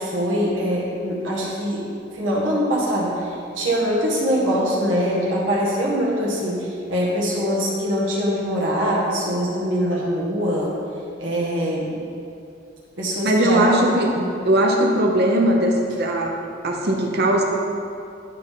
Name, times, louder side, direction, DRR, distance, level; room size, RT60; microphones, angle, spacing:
voice 1, 0.0-1.8 2.1-10.7 11.2-12.0 13.0-13.8 14.2-14.3, equal, 85° right, -4 dB, 1.7 m, -23 dB
voice 2, 13.2-14.1 14.4-16.4 16.6-17.4, right 1 dB, 55° right, 1 dB, 0.9 m, -19 dB
11.5 x 4.0 x 3.7 m, 2.5 s
head